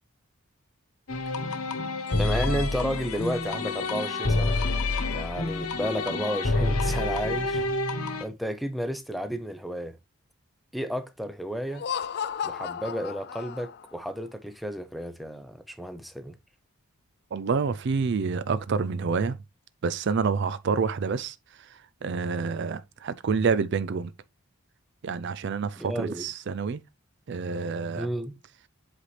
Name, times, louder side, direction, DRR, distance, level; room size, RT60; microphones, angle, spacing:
sound 1, 1.1-8.2, left 2 dB, 80° left, 1.0 m, -28 dB
voice 1, 2.2-4.6 5.0-7.6 8.2-10.0 10.7-11.9 12.4-16.4 25.8-26.3 28.0-28.4, equal, ahead, 0.6 m, -32 dB
Laughter, 11.7-14.0, left 8 dB, 50° left, 0.4 m, -34 dB
voice 2, 17.3-19.4 19.8-21.4 22.0-24.1 25.0-26.8 27.3-28.1, right 5 dB, 50° right, 0.4 m, -28 dB
7.9 x 4.1 x 3.2 m
head